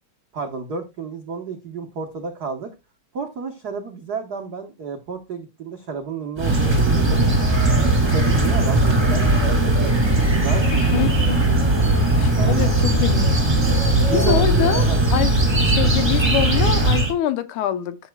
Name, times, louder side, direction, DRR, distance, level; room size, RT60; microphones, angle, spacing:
voice 1, 0.3-2.7 3.1-7.2 7.8-9.9 10.4-11.1 12.3-12.7 14.0-15.0, right 5 dB, 90° right, 0.8 m, -31 dB
sound 1, 6.4-17.1, right 2 dB, 10° right, 1.6 m, -18 dB
voice 2, 10.9-11.6 12.2-13.4 14.1-14.9 15.1-15.3 15.6-18.0, left 11 dB, 85° left, 2.3 m, -25 dB
14.0 x 7.1 x 2.2 m
omnidirectional pair, 3.4 m